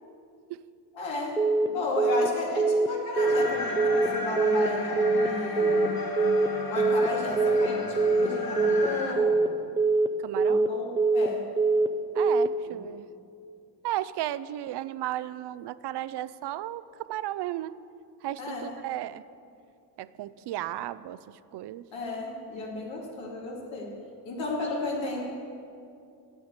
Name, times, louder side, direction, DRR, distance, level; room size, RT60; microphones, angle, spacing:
voice 1, 0.9-5.7 6.7-9.5 10.4-11.4 12.6-12.8 18.4-18.7 21.9-23.9 24.2-25.2, left 2 dB, 85° left, -3 dB, 2.6 m, -33 dB
Telephone, 1.4-1.7 2.0-2.3 2.6-2.9 3.2-3.5 3.8-4.1 4.4-4.7 5.0-5.3 5.6-5.9 6.2-6.5 6.8-7.1 7.4-7.7 8.0-8.3 8.6-8.9 9.2-9.5 9.8-10.1 10.4-10.7 11.0-11.3 11.6-11.9 12.2-12.5, right 3 dB, 10° right, 0.4 m, -23 dB
sound 1, 3.1-9.1, left 4 dB, 50° left, 1.6 m, -34 dB
voice 2, 10.2-10.6 12.1-13.1 13.8-17.7 18.2-19.2 20.0-21.2 21.5-21.8, right 13 dB, 65° right, 16 dB, 0.5 m, -34 dB
8.7 x 8.0 x 8.2 m, 2.5 s
cardioid pair, 85°, 44 cm